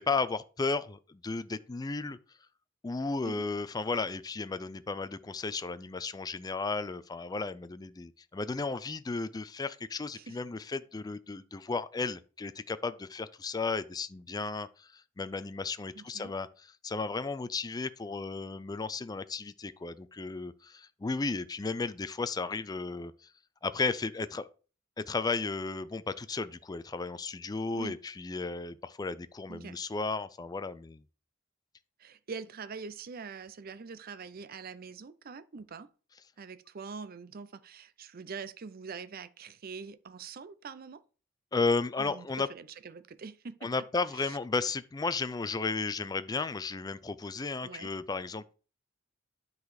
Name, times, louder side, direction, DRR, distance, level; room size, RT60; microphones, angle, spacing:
voice 1, 0.0-2.2 2.8-16.5 16.8-23.3 23.6-24.5 25.0-31.0 41.5-42.5 43.6-48.5, left 4 dB, 20° left, 0.4 m, -34 dB
voice 2, 15.9-16.3 27.7-28.0 29.5-29.8 32.0-35.9 36.4-41.0 42.0-43.7 44.1-44.4 47.6-47.9, right 5 dB, 50° right, 0.5 m, -44 dB
9.7 x 4.0 x 4.8 m
head